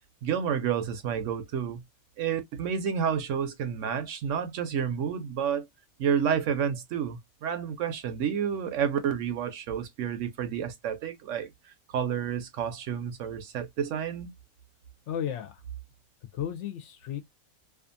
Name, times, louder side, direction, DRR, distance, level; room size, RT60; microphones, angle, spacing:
voice 1, 0.2-1.8 2.2-5.7 6.0-11.5 11.9-14.3, right 8 dB, 70° right, 0.9 m, -30 dB
voice 2, 15.1-15.6 16.3-17.2, left 9 dB, 65° left, 0.8 m, -34 dB
2.5 x 2.4 x 2.5 m
omnidirectional pair, 1.5 m